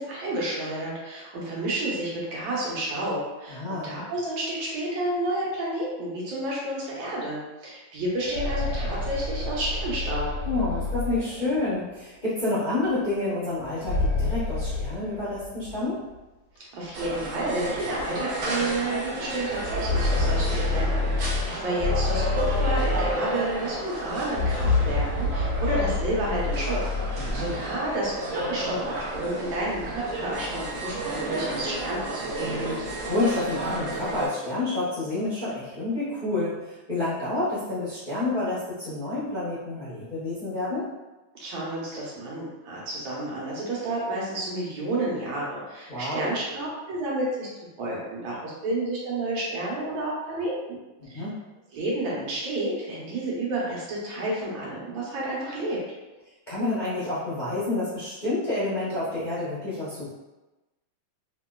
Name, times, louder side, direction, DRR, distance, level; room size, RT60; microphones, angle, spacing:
voice 1, 0.0-10.3 16.6-26.8 27.1-32.5 41.4-47.5 47.8-50.8 51.1-51.2 51.7-55.8, right 1 dB, 80° right, -5 dB, 1.6 m, -30 dB
voice 2, 3.5-3.9 10.4-16.0 27.2-27.6 32.7-40.9 45.9-46.3 51.1-51.4 56.5-60.1, left 2 dB, 45° left, -12 dB, 0.6 m, -29 dB
sound 1, 8.0-11.8 13.6-15.8 16.1-16.2 17.1-17.2 17.6-17.8 19.4-23.6 24.2-27.6, left 3 dB, 85° left, 0.7 m, -28 dB
sound 2, 16.9-34.3, right 1 dB, 65° right, 0.8 m, -32 dB
3.1 x 2.9 x 2.2 m, 1.1 s
omnidirectional pair, 2.2 m